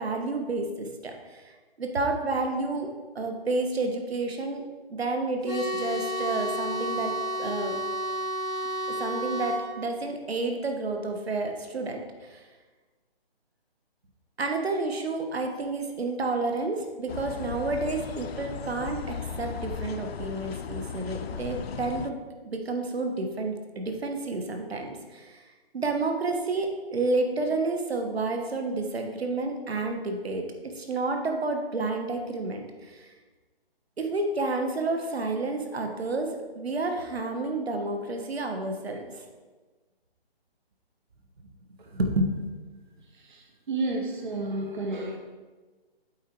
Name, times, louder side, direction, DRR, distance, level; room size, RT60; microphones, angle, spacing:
voice 1, 0.0-2.9 3.1-4.6 4.9-7.8 9.0-12.4 14.4-25.4 25.7-33.1 34.0-39.3 41.9-42.3, right 2 dB, 80° right, 4 dB, 1.3 m, -30 dB
sound 1, 5.5-9.7, right 1 dB, 50° left, 2.2 m, -31 dB
sound 2, 17.1-22.1, left 7 dB, 80° left, 0.5 m, -36 dB
voice 2, 43.7-45.2, right 2 dB, 50° right, 1 dB, 1.0 m, -30 dB
8.2 x 4.4 x 4.5 m, 1.3 s
hypercardioid pair, 175°, 31 cm